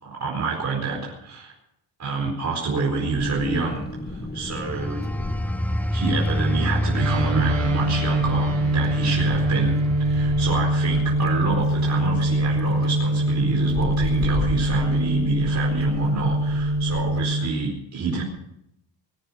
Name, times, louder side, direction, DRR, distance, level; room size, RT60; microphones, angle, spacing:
voice 1, 0.0-1.5 2.0-5.0 5.9-18.2, right 4 dB, 35° right, -2 dB, 4.5 m, -28 dB
Wind, 3.1-17.3, left 2 dB, 20° left, 1.5 m, -36 dB
sound 1, 4.6-14.9 15.4-15.6, equal, 5° left, 0.7 m, -29 dB
sound 2, 7.0-17.5, right 1 dB, 65° right, 2.1 m, -23 dB
20.5 x 10.0 x 6.4 m, 0.79 s
cardioid pair, 130°, 48 cm